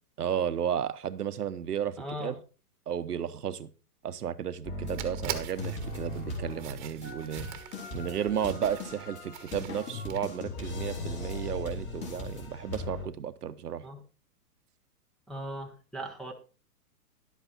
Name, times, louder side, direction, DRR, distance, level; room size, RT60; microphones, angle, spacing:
voice 1, 0.2-2.4 2.9-3.7 4.0-7.5 7.9-13.8, right 9 dB, 85° right, 1.0 m, -33 dB
voice 2, 2.0-2.3 13.8-14.0 15.3-16.3, equal, ahead, 0.9 m, -38 dB
sound 1, 4.6-13.1, left 2 dB, 25° left, 3.9 m, -38 dB
sound 2, 4.8-10.2, right 12 dB, 30° right, 1.3 m, -43 dB
11.5 x 8.2 x 4.3 m
hypercardioid pair, 140°, 46 cm